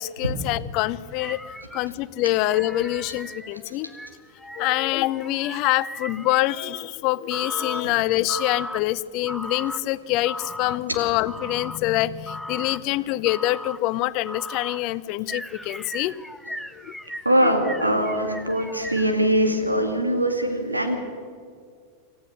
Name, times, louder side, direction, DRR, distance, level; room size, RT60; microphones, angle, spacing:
voice 1, 0.0-3.9 4.5-16.2 16.7-16.9 17.4-17.6, left 16 dB, 40° left, 18 dB, 0.6 m, -25 dB
sound 1, 1.2-1.9 2.5-6.7 7.3-7.9 8.3-8.8 9.3-9.8 10.2-10.8 11.2-11.8 12.3-12.8 13.3-13.8 14.2-14.8 15.3-19.1, left 1 dB, ahead, 0.7 m, -37 dB
voice 2, 17.2-21.0, right 1 dB, 85° right, 5 dB, 2.4 m, -22 dB
27.5 x 14.0 x 6.9 m, 2.2 s
figure-of-eight pair, 90°, 0 cm